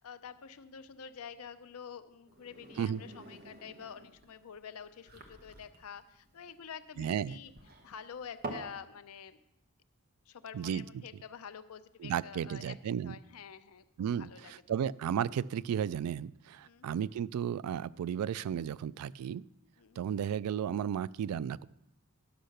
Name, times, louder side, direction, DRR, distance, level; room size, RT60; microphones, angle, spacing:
voice 1, 0.0-7.5 7.8-9.4 10.3-12.8 13.0-13.8 14.1-14.5 16.6-16.9 19.8-20.0, left 7 dB, 75° left, 11 dB, 0.6 m, -48 dB
sound 1, 2.3-8.8, right 2 dB, 45° right, 1.1 m, -47 dB
voice 2, 7.0-7.4 10.5-11.0 12.0-13.2 14.0-19.4 20.0-21.7, right 9 dB, 85° right, 18 dB, 0.3 m, -34 dB
10.0 x 5.5 x 6.5 m, 0.83 s
head